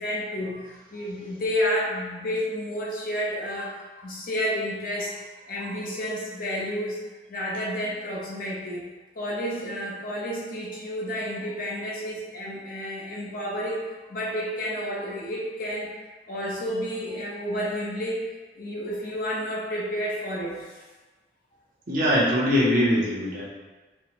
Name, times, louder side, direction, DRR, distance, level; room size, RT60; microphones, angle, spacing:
voice 1, 0.0-5.1 5.5-7.0 7.3-8.8 9.2-13.8 14.1-15.9 16.3-18.3 18.6-20.8, equal, 45° left, -4 dB, 0.7 m, -30 dB
voice 2, 21.9-23.5, equal, 45° right, -4 dB, 0.7 m, -22 dB
4.2 x 2.1 x 2.9 m, 1.2 s
head